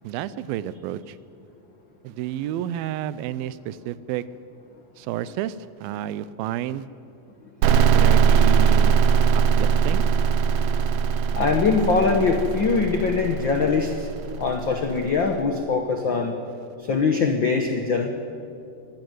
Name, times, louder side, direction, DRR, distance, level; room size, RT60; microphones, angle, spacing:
voice 1, 0.0-1.2 2.0-4.2 5.0-6.9 7.6-9.0 9.3-10.1, right 12 dB, 85° right, 16 dB, 2.5 m, -31 dB
sound 1, 7.6-15.2, right 7 dB, 70° right, 2.3 m, -20 dB
voice 2, 11.0-14.1 14.4-16.3 16.9-18.1, left 4 dB, 80° left, 4 dB, 1.0 m, -22 dB
25.0 x 13.0 x 9.5 m, 2.5 s
omnidirectional pair, 4.2 m